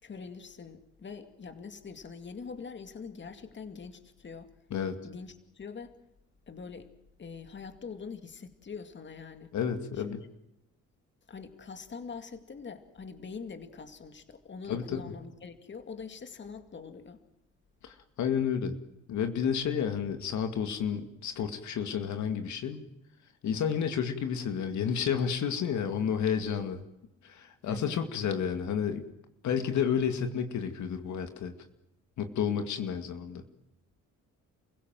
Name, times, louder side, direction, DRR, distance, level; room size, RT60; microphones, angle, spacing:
voice 1, 0.0-4.5 5.0-5.9 6.5-6.9 7.2-9.5 10.0-10.2 11.3-17.2 27.7-28.1, left 5 dB, 40° left, 8 dB, 2.3 m, -43 dB
voice 2, 9.5-10.2 14.7-15.0 17.8-18.7 19.1-22.8 23.4-26.8 27.2-29.0 29.4-31.5 32.2-33.4, left 7 dB, 70° left, 7 dB, 2.3 m, -31 dB
29.0 x 16.5 x 7.7 m, 0.89 s
cardioid pair, 90°, 30 cm